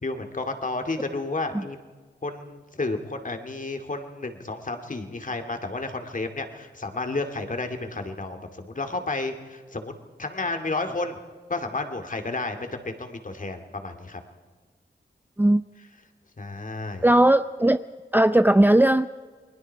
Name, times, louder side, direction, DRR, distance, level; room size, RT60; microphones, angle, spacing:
voice 1, 0.0-1.8 2.2-9.9 10.2-11.2 11.5-14.2 16.4-17.1, left 3 dB, 45° left, 5 dB, 2.3 m, -31 dB
voice 2, 17.0-17.8 18.1-19.1, right 1 dB, 10° right, 11 dB, 0.5 m, -18 dB
29.0 x 20.5 x 4.6 m, 1.4 s
cardioid pair, 60°, 19 cm